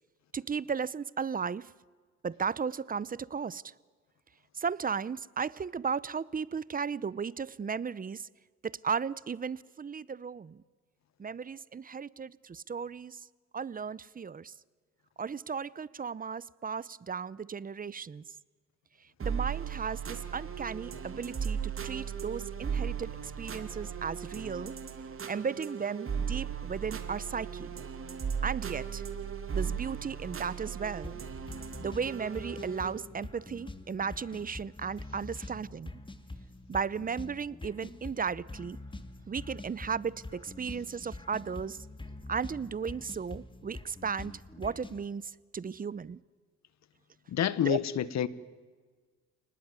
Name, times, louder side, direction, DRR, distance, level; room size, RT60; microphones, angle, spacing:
voice 1, 0.3-1.7 2.2-3.7 4.5-8.3 8.6-10.6 11.2-13.2 13.5-14.5 15.2-18.2 19.2-24.7 25.3-27.7 28.4-29.0 29.5-31.2 31.8-35.9 36.7-38.8 39.3-41.8 42.3-46.2 47.6-47.8, right 6 dB, 30° right, 21 dB, 0.7 m, -35 dB
sound 1, 19.2-33.0, right 7 dB, 45° right, 2.7 m, -37 dB
sound 2, 31.0-45.0, left 2 dB, 15° left, 2.2 m, -45 dB
voice 2, 47.3-48.3, left 10 dB, 65° left, 17 dB, 1.3 m, -28 dB
29.0 x 19.5 x 9.6 m, 1.4 s
cardioid pair, 90°, 30 cm